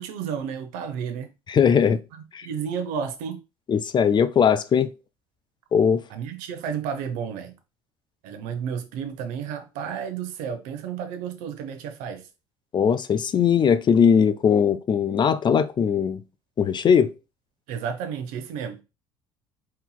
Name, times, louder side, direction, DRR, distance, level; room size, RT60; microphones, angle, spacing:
voice 1, 0.0-1.3 2.1-3.4 6.1-7.5 8.2-12.2 17.7-18.8, right 7 dB, 65° right, 0.8 m, -32 dB
voice 2, 1.5-2.0 2.3-2.5 3.7-4.9 5.7-6.0 12.7-16.2 16.6-17.1, left 7 dB, 30° left, 0.4 m, -20 dB
4.3 x 4.0 x 2.2 m
hypercardioid pair, 60°, 14 cm